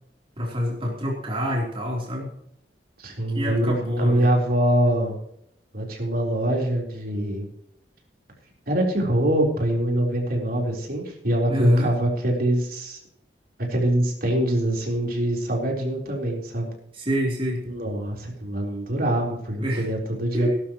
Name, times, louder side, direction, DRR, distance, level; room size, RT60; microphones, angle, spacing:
voice 1, 0.4-2.3 3.3-4.3 11.5-11.9 16.9-17.6 19.6-19.9 20.3-20.5, equal, 30° right, -2 dB, 3.6 m, -26 dB
voice 2, 3.0-5.2 5.7-7.5 8.7-13.0 13.7-16.7 17.6-20.5, right 1 dB, 60° right, -1 dB, 4.1 m, -24 dB
18.5 x 12.5 x 3.1 m, 0.71 s
head